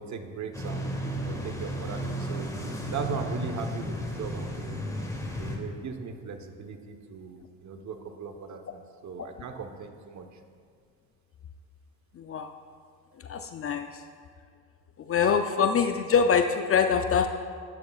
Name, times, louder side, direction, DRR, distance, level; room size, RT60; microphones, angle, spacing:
voice 1, 0.0-2.5 2.9-4.8 5.4-10.2, right 5 dB, 45° right, 6 dB, 1.1 m, -38 dB
sound 1, 0.5-5.6, equal, 10° left, 1.8 m, -33 dB
voice 2, 12.2-12.5 13.2-13.9 15.1-17.3, left 6 dB, 35° left, 7 dB, 0.5 m, -24 dB
13.0 x 10.5 x 2.4 m, 2.1 s
supercardioid pair, 80°, 40 cm